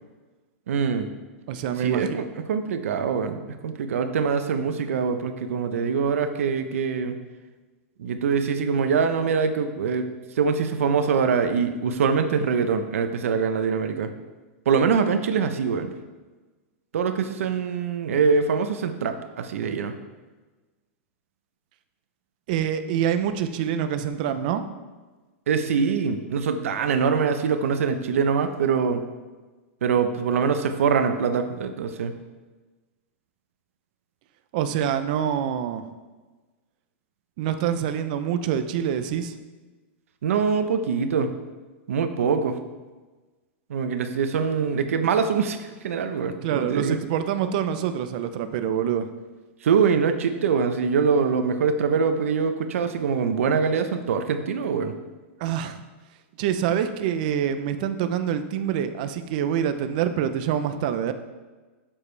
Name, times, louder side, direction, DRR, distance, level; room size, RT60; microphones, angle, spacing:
voice 1, 0.7-1.1 1.8-7.2 8.0-10.1 10.4-14.1 14.7-15.9 16.9-19.9 25.5-29.0 29.8-32.1 40.2-41.3 41.9-42.6 43.7-47.0 49.6-54.9, right 6 dB, 90° right, 8 dB, 0.9 m, -24 dB
voice 2, 1.5-2.2 22.5-24.7 34.5-35.8 37.4-39.3 46.4-49.1 55.4-55.8 56.4-61.1, right 9 dB, 40° right, 10 dB, 0.6 m, -26 dB
11.5 x 7.4 x 3.3 m, 1.3 s
supercardioid pair, 175°, 7 cm